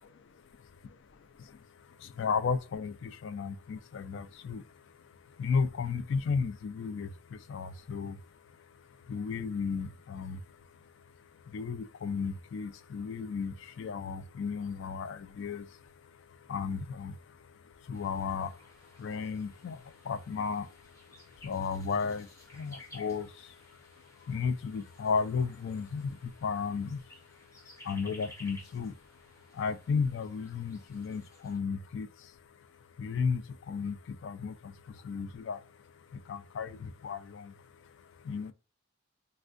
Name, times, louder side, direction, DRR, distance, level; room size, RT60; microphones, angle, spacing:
voice 1, 0.8-38.5, left 5 dB, 60° left, 0.3 m, -35 dB
sound 1, 17.9-31.6, left 1 dB, 15° left, 0.6 m, -56 dB
3.4 x 2.1 x 2.4 m
head